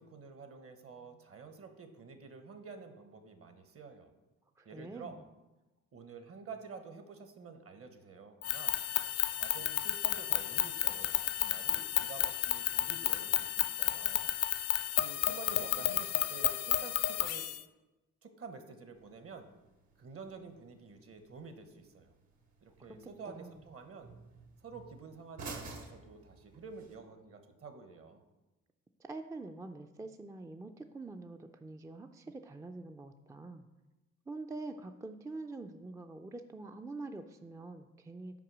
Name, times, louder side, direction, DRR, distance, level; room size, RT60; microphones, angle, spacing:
voice 1, 0.0-4.1 4.6-5.3 5.9-8.8 9.3-14.3 14.9-17.5 18.2-19.5 20.0-22.1 22.6-24.2 24.6-28.2, right 4 dB, 50° right, 8 dB, 1.0 m, -49 dB
voice 2, 4.6-5.2 23.3-23.6 29.0-33.7 34.3-38.4, right 3 dB, 10° right, 6 dB, 0.3 m, -45 dB
sound 1, 8.4-17.6, left 12 dB, 55° left, 0.4 m, -32 dB
sound 2, 18.9-26.9, right 3 dB, 65° right, 1.5 m, -52 dB
5.9 x 4.7 x 6.1 m, 1.1 s
cardioid pair, 90°, 30 cm